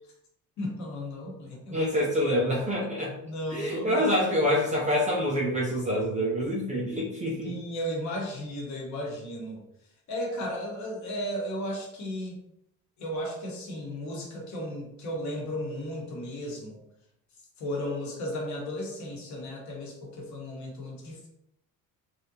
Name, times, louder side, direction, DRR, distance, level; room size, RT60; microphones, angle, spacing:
voice 1, 0.6-1.8 3.2-4.1 7.4-9.6 10.1-12.4 13.0-16.8 17.6-21.3, equal, 50° left, -1 dB, 1.0 m, -35 dB
voice 2, 1.7-3.2 3.5-7.5, equal, 20° right, -4 dB, 0.3 m, -26 dB
3.3 x 2.6 x 2.6 m, 0.79 s
cardioid pair, 170°, 37 cm